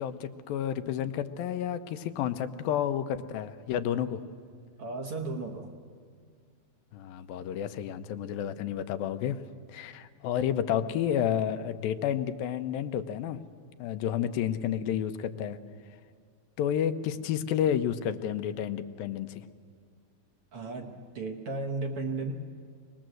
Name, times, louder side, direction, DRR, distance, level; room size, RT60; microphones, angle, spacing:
voice 1, 0.0-4.2 6.9-9.4 9.7-13.4 13.8-15.6 16.6-19.5, left 9 dB, 85° left, 9 dB, 2.5 m, -30 dB
voice 2, 4.8-5.7 20.5-22.3, right 3 dB, 60° right, 4 dB, 1.5 m, -34 dB
24.0 x 20.0 x 7.7 m, 2.1 s
omnidirectional pair, 4.1 m